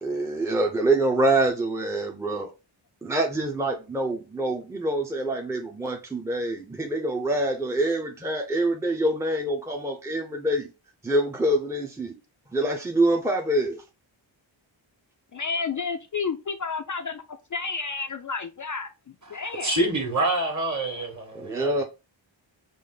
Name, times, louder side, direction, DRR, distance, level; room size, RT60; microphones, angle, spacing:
voice 1, 0.0-2.5 3.0-10.7 11.0-12.2 12.5-13.8 21.3-21.8, right 1 dB, 5° right, 0.7 m, -25 dB
voice 2, 15.3-19.8, left 5 dB, 40° left, 0.5 m, -31 dB
voice 3, 19.3-21.8, right 2 dB, 35° right, 1.6 m, -27 dB
5.2 x 2.1 x 3.8 m
wide cardioid pair, 70°, 47 cm